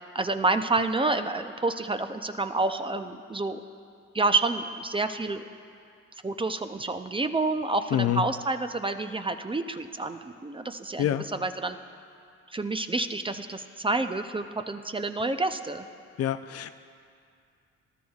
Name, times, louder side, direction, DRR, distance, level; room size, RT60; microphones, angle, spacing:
voice 1, 0.1-3.6 4.1-5.4 6.2-11.8 12.5-15.8, right 3 dB, 15° right, 8 dB, 0.5 m, -28 dB
voice 2, 16.2-16.7, left 11 dB, 55° left, 11 dB, 0.5 m, -26 dB
19.5 x 12.5 x 2.4 m, 2.3 s
cardioid pair, 80°, 30 cm